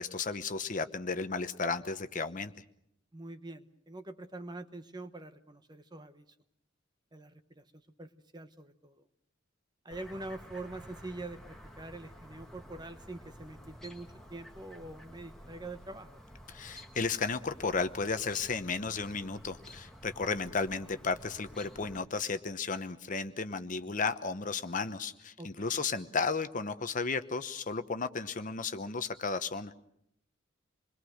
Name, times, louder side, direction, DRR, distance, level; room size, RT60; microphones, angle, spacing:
voice 1, 0.0-2.5 16.5-29.7, left 4 dB, 40° left, 10 dB, 1.0 m, -34 dB
voice 2, 3.1-6.2 7.1-9.1 9.8-16.2 25.4-25.7, right 2 dB, 20° right, 9 dB, 1.1 m, -45 dB
Chirp tweet, 9.9-22.0, equal, ahead, 1.7 m, -52 dB
27.0 x 22.0 x 6.4 m, 0.74 s
head